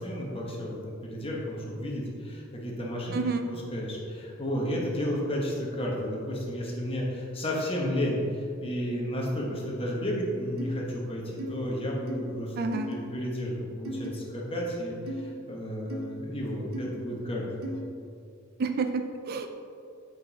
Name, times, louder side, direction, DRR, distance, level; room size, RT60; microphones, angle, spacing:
voice 1, 0.0-3.1 3.7-12.5 12.9-17.7, equal, 25° left, -2 dB, 1.4 m, -32 dB
voice 2, 3.1-3.5 12.6-12.9 18.6-19.5, right 4 dB, 45° right, 6 dB, 0.4 m, -29 dB
sound 1, 10.6-10.8 11.4-11.5 12.1-12.2 12.7-12.9 13.9-14.1 15.1-15.2 15.9-16.1 16.7-16.9 17.6-17.8, right 1 dB, 85° right, 1.1 m, -35 dB
7.6 x 5.4 x 4.2 m, 2.5 s
head